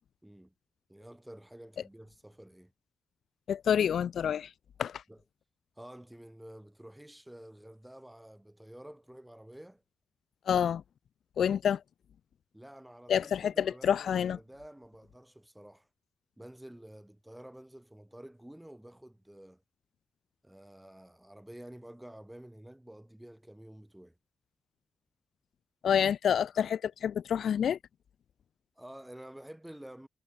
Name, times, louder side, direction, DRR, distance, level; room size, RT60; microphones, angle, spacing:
voice 1, 0.2-0.5 0.9-2.7 5.1-5.2 5.8-9.8 12.5-15.9 16.4-19.6 20.4-24.1 28.8-30.1, right 1 dB, 5° right, 7.3 m, -50 dB
voice 2, 3.5-4.5 4.8-5.0 10.5-10.8 11.4-11.8 13.1-14.4 25.8-27.8, left 8 dB, 80° left, 0.3 m, -28 dB
cardioid pair, 85°, 0 cm